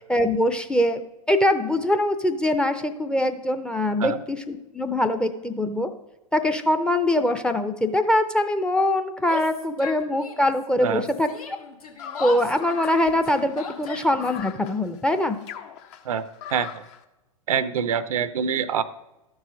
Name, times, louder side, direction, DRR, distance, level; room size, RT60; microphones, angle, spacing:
voice 1, 0.1-5.9 6.3-11.3 12.2-15.4, left 1 dB, 5° left, 8 dB, 0.6 m, -23 dB
Yell, 9.2-10.6 10.9-14.4, left 5 dB, 80° left, 1.4 m, -37 dB
sound 1, 12.0-17.0, left 9 dB, 50° left, 0.8 m, -40 dB
voice 2, 16.5-16.8 17.5-18.8, right 7 dB, 70° right, 14 dB, 0.6 m, -25 dB
12.5 x 4.8 x 5.0 m, 0.99 s
figure-of-eight pair, 100°, 19 cm